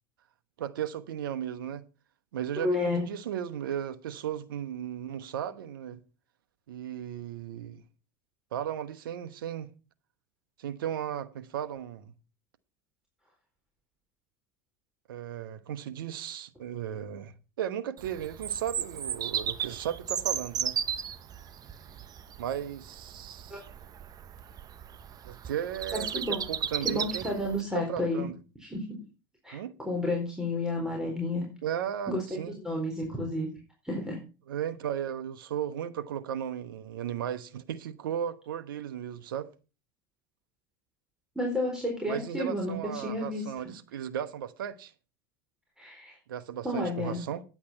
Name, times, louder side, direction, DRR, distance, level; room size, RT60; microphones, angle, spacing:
voice 1, 0.6-1.8 2.3-6.0 6.7-7.8 8.5-9.7 10.6-12.1 15.1-20.8 22.4-23.6 25.2-27.4 27.7-28.3 29.5-29.7 31.6-32.6 34.5-39.5 42.1-44.9 46.3-47.4, right 10 dB, 85° right, 1.1 m, -35 dB
voice 2, 2.6-3.1 23.5-23.6 25.9-26.5 26.8-28.3 28.6-29.0 29.4-29.6 29.8-31.4 32.1-33.5 33.8-34.2 41.4-43.7 45.8-46.2 46.6-47.2, left 1 dB, 5° right, 4.4 m, -31 dB
Bird vocalization bird call bird song, 18.0-27.6, right 8 dB, 35° right, 0.9 m, -35 dB
10.0 x 8.6 x 5.7 m
hypercardioid pair, 95°, 11 cm